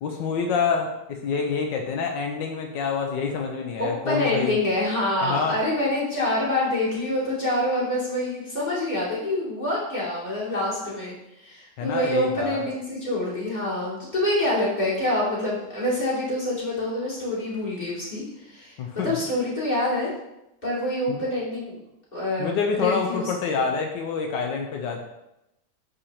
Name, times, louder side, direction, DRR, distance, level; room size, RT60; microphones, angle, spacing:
voice 1, 0.0-4.6 5.2-5.6 11.8-12.6 18.8-19.2 21.1-21.2 22.4-25.0, left 5 dB, 85° left, 2 dB, 1.4 m, -27 dB
voice 2, 3.8-20.1 20.6-21.8 22.1-22.5 22.8-23.3, left 1 dB, 25° left, -8 dB, 2.6 m, -26 dB
9.9 x 4.3 x 2.9 m, 0.89 s
omnidirectional pair, 1.9 m